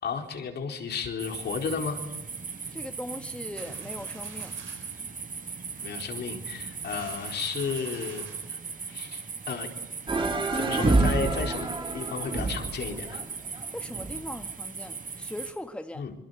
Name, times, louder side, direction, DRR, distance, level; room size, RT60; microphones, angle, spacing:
voice 1, 0.0-2.0 5.8-8.6 8.9-9.7 10.5-13.2 15.9-16.1, left 5 dB, 60° left, 4.5 m, -33 dB
sound 1, 1.2-15.5, right 5 dB, 45° right, 4.6 m, -38 dB
voice 2, 2.7-4.5 13.7-16.0, left 1 dB, 5° left, 1.5 m, -39 dB
sound 2, 3.6-9.1, right 7 dB, 80° right, 5.8 m, -50 dB
sound 3, 10.1-14.3, right 2 dB, 25° right, 3.4 m, -27 dB
26.5 x 22.5 x 8.3 m
cardioid pair, 90°, 20 cm